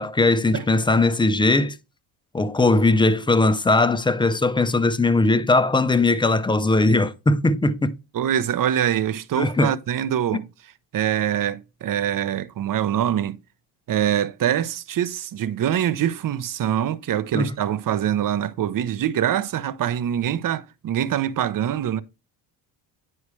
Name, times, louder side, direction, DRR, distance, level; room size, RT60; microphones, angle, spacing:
voice 1, 0.0-1.8 2.3-8.0 9.4-9.7 17.3-17.5, left 2 dB, 10° left, 0.5 m, -19 dB
voice 2, 8.1-10.4 10.9-13.4 13.9-22.0, right 10 dB, 45° right, 0.8 m, -24 dB
9.7 x 4.7 x 3.2 m
cardioid pair, 90°, 48 cm